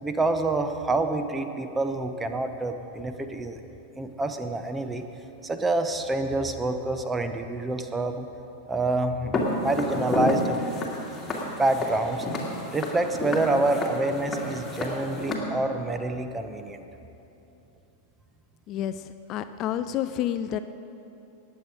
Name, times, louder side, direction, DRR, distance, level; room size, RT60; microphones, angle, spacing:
voice 1, 0.0-3.6 4.0-5.1 5.4-8.3 8.7-10.8 11.6-12.3 12.7-16.8, right 2 dB, 15° right, 8 dB, 0.8 m, -27 dB
Walk footsteps, 9.3-15.4, left 1 dB, 15° left, 2.1 m, -30 dB
voice 2, 18.7-20.6, left 11 dB, 35° left, 11 dB, 0.4 m, -29 dB
19.5 x 7.8 x 4.9 m, 2.9 s
figure-of-eight pair, 90°, 0 cm